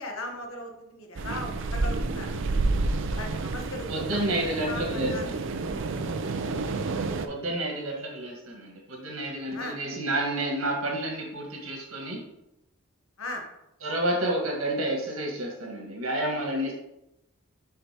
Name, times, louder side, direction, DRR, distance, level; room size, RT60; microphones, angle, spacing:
voice 1, 0.0-2.3 3.1-5.2 6.4-6.8 9.5-9.8 13.2-13.4, left 1 dB, 80° left, 3 dB, 1.2 m, -38 dB
sound 1, 1.2-7.3, right 3 dB, 65° right, 0.5 m, -29 dB
voice 2, 3.9-5.6 7.3-12.2 13.8-16.7, right 1 dB, 85° right, 0 dB, 1.7 m, -30 dB
6.7 x 5.6 x 3.0 m, 0.88 s
head